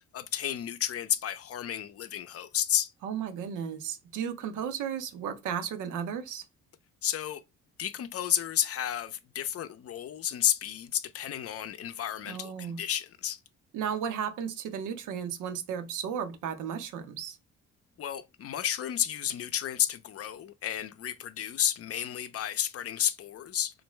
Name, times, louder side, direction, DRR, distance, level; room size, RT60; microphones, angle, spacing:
voice 1, 0.0-2.9 7.0-7.4 7.8-13.4 18.0-23.7, left 10 dB, 50° left, 0.5 m, -31 dB
voice 2, 3.0-6.4 12.3-12.8 13.7-17.4, right 8 dB, 85° right, 0.7 m, -34 dB
3.4 x 2.6 x 3.1 m
cardioid pair, 90°, 30 cm